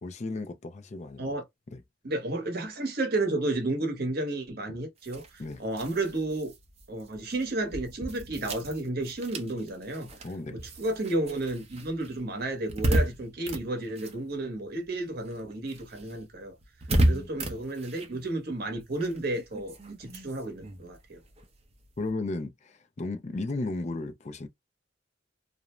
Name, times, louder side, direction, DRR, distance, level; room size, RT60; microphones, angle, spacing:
voice 1, 0.0-1.3 1.7-1.8 4.7-4.8 5.4-5.6 10.2-10.6 16.9-17.3 22.0-24.5, left 2 dB, 35° left, 0.4 m, -35 dB
voice 2, 2.0-6.5 6.9-10.1 10.5-16.5 17.1-21.2, right 2 dB, 55° right, 0.9 m, -32 dB
sound 1, 5.0-14.9 15.2-22.1, right 1 dB, 35° right, 0.6 m, -34 dB
2.5 x 2.0 x 2.9 m
head